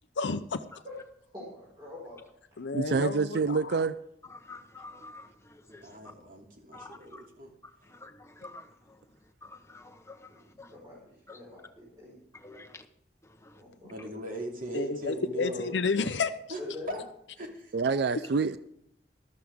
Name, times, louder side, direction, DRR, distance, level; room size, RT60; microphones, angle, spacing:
voice 1, 0.2-0.6 2.6-3.7 14.7-16.3, left 4 dB, 85° left, 0.6 m, -30 dB
voice 2, 1.3-2.2 2.5-2.6 10.3-12.2 13.6-14.1 16.6-17.0, left 2 dB, 25° right, 5.2 m, -45 dB
voice 3, 2.7-3.9 17.7-18.6, right 4 dB, 70° right, 0.5 m, -27 dB
voice 4, 4.5-5.3 5.7-5.8 6.7-7.0 8.0-8.1 8.4-8.6 9.4-10.2 10.6-10.7 12.4-12.8, left 2 dB, 15° left, 1.0 m, -47 dB
voice 5, 5.7-7.5 13.9-15.7 16.5-16.6 16.9-17.0 17.4-17.7, right 1 dB, 50° right, 2.8 m, -38 dB
13.5 x 13.0 x 3.6 m
head